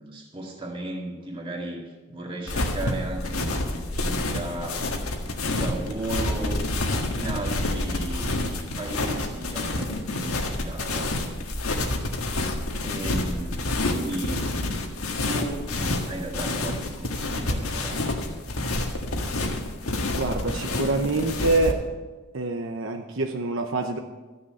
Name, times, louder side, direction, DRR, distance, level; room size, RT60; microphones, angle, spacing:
voice 1, 0.0-5.0 5.2-6.6 7.1-11.2 12.5-14.5 15.2-18.0, right 1 dB, 25° right, -1 dB, 2.1 m, -35 dB
sound 1, 2.5-21.7, left 2 dB, 90° left, 1.7 m, -28 dB
voice 2, 20.2-21.8 22.3-24.0, right 2 dB, 65° right, 5 dB, 0.8 m, -26 dB
14.0 x 6.8 x 8.7 m, 1.3 s
head